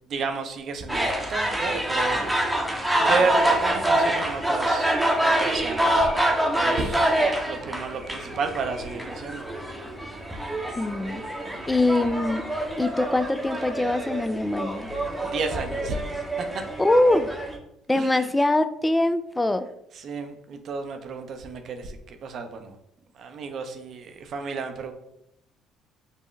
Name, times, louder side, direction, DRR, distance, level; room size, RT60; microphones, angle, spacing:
voice 1, 0.0-2.2 2.7-4.9 5.2-6.1 6.6-7.1 7.5-9.4 15.3-16.0 17.9-18.3 20.0-22.7 23.2-24.9, right 4 dB, 55° right, 6 dB, 0.6 m, -32 dB
sound 1, 0.9-17.5, right 1 dB, 10° right, 0.8 m, -26 dB
voice 2, 10.8-11.2 11.7-12.4 12.8-14.9 16.8-17.3 17.9-19.7, left 2 dB, 15° left, 12 dB, 0.3 m, -23 dB
5.2 x 2.1 x 3.2 m, 0.80 s
hypercardioid pair, 60°, 0 cm